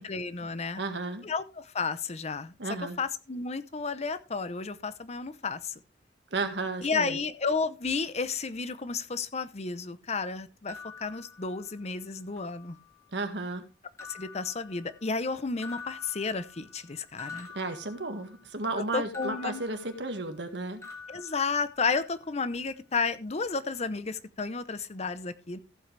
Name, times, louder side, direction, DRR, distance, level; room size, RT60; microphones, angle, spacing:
voice 1, 0.0-0.8 1.2-2.5 3.0-5.7 6.8-12.8 14.1-17.5 18.8-19.6 21.1-25.6, left 4 dB, 35° left, 0.8 m, -32 dB
voice 2, 0.8-1.3 2.6-3.0 6.3-7.2 13.1-13.6 17.5-20.8, right 3 dB, 70° right, 1.8 m, -33 dB
sound 1, 10.7-12.0 12.4-13.1 14.0-15.2 15.6-18.5 19.1-20.5 20.8-22.1, left 5 dB, 15° left, 2.2 m, -47 dB
15.0 x 7.7 x 3.3 m
head